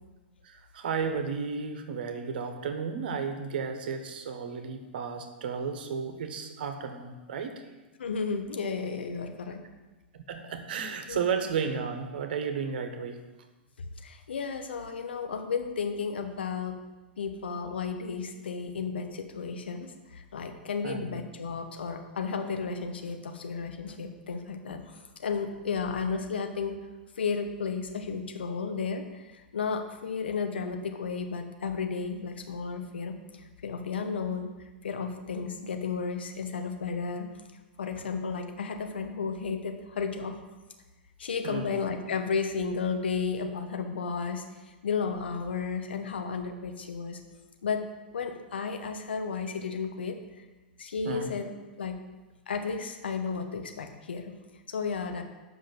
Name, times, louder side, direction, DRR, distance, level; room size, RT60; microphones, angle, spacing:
voice 1, 0.4-7.6 10.1-13.2 20.8-21.1 41.4-41.7 51.0-51.3, right 6 dB, 60° right, 7 dB, 1.3 m, -33 dB
voice 2, 8.0-9.7 11.1-11.2 14.0-16.8 17.2-26.8 27.2-34.5 34.8-37.3 37.8-40.4 41.2-44.4 44.8-47.2 47.6-47.8 48.1-50.2 50.8-51.5 51.8-52.0 52.5-54.4 54.7-55.2, left 5 dB, 70° left, 5 dB, 1.2 m, -33 dB
7.8 x 5.9 x 7.5 m, 1.2 s
figure-of-eight pair, 100°, 6 cm